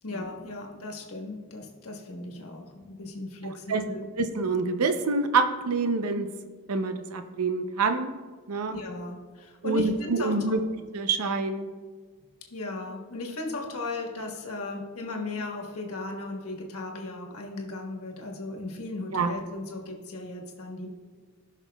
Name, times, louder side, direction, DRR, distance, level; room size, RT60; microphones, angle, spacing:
voice 1, 0.0-4.1 8.7-10.6 12.5-20.9, left 2 dB, 85° left, 1 dB, 1.3 m, -36 dB
voice 2, 4.2-6.3 6.7-8.1 8.5-8.8 9.6-10.6 10.9-11.7 19.1-19.3, right 4 dB, 85° right, 8 dB, 0.6 m, -26 dB
17.0 x 5.9 x 2.3 m, 1.5 s
head